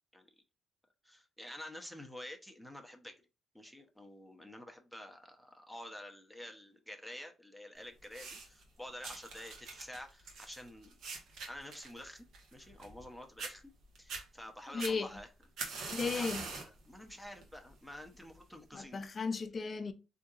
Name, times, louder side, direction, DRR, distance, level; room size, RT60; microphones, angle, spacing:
voice 1, 1.0-3.2 3.5-11.0 11.5-12.2 12.5-13.6 14.0-15.3 16.1-16.3 16.6-19.0, left 1 dB, ahead, 0.6 m, -49 dB
sound 1, 8.0-8.6 9.0-13.1 13.4-13.5 14.0-14.2 14.8-16.8 17.2-17.6 18.4-18.5, right 4 dB, 80° right, 1.0 m, -43 dB
voice 2, 14.7-15.1 15.9-16.4 18.7-19.9, left 4 dB, 40° left, 0.4 m, -35 dB
3.6 x 2.7 x 2.4 m
cardioid pair, 90°, 0 cm